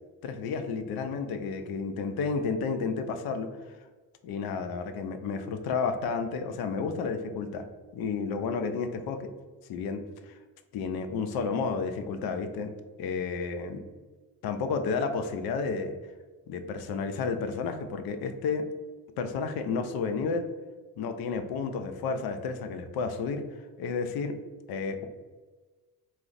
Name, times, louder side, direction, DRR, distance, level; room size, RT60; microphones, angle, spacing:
voice 1, 0.2-3.5 4.2-7.6 7.9-9.3 9.7-10.3 10.7-12.7 13.0-13.8 14.4-15.9 16.5-18.7 19.2-20.5 21.0-23.5 23.8-24.4 24.7-25.1, left 5 dB, 55° left, 8 dB, 0.5 m, -31 dB
2.3 x 2.0 x 3.8 m, 1.3 s
hypercardioid pair, 55°, 46 cm